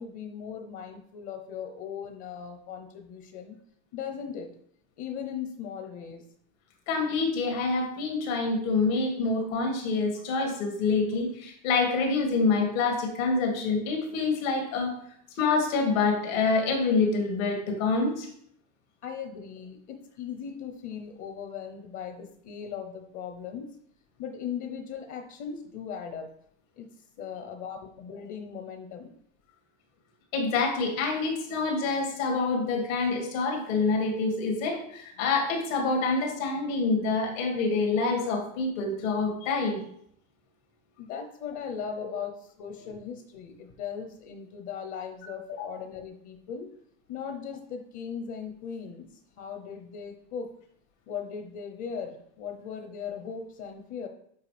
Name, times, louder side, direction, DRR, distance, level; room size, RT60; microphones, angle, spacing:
voice 1, 0.0-3.6 3.9-4.5 5.0-6.3 19.0-23.7 24.2-26.3 26.8-29.1 41.0-46.7 47.1-50.5 51.1-54.1, left 7 dB, 45° left, 5 dB, 0.9 m, -38 dB
voice 2, 6.9-15.0 15.4-18.3 30.3-39.8 45.5-45.6, left 4 dB, 75° left, 1 dB, 2.4 m, -26 dB
8.1 x 4.7 x 3.4 m, 0.67 s
supercardioid pair, 140°, 40 cm